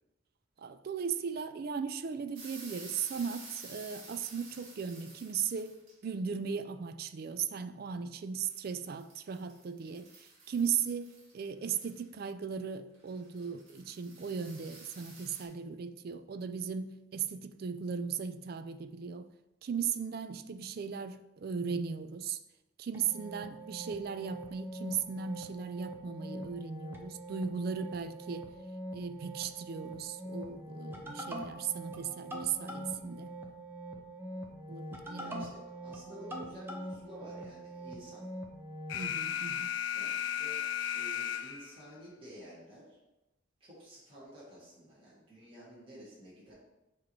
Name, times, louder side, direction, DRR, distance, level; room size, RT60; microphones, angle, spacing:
voice 1, 0.6-19.3 19.6-22.4 22.8-28.5 28.9-33.3 34.7-35.5 38.9-39.7, right 6 dB, 50° right, 0.3 m, -37 dB
sound 1, 2.3-6.0 8.4-12.0 13.1-15.4, right 3 dB, 75° right, 1.8 m, -51 dB
sound 2, 22.9-39.0, right 1 dB, 10° right, 0.7 m, -44 dB
voice 2, 35.2-38.2 39.9-40.6 40.9-43.0 43.6-46.5, equal, 25° right, 1.8 m, -51 dB
Alarm, 38.9-41.9, left 9 dB, 60° left, 0.3 m, -35 dB
7.2 x 3.0 x 4.7 m
head